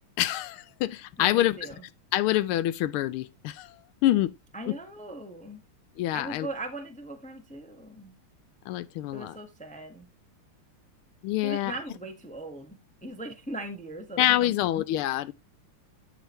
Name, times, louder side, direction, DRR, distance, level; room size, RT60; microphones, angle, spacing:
voice 1, 0.2-1.6 2.1-4.4 4.7-4.8 6.0-6.5 8.6-9.4 11.2-11.8 14.2-15.3, left 14 dB, 85° left, 1.5 m, -26 dB
voice 2, 1.2-1.8 4.5-5.6 6.1-8.1 9.1-10.1 11.4-14.6, right 2 dB, 5° left, 1.1 m, -39 dB
12.5 x 5.1 x 3.1 m
omnidirectional pair, 2.4 m